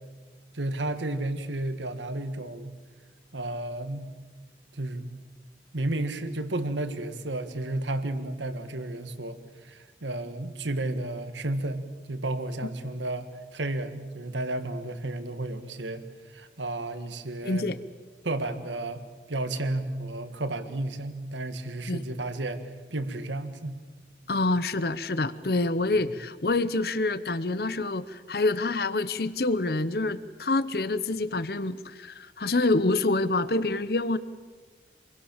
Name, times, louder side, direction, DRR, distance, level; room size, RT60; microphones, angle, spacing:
voice 1, 0.5-2.8 3.3-4.1 4.7-5.1 5.7-17.7 18.2-22.6 22.9-23.8 26.1-26.2, right 2 dB, 90° right, 9 dB, 1.8 m, -32 dB
voice 2, 17.4-17.8 21.9-22.0 24.3-34.2, left 2 dB, 55° left, 15 dB, 0.9 m, -27 dB
27.5 x 22.5 x 7.3 m, 1.3 s
head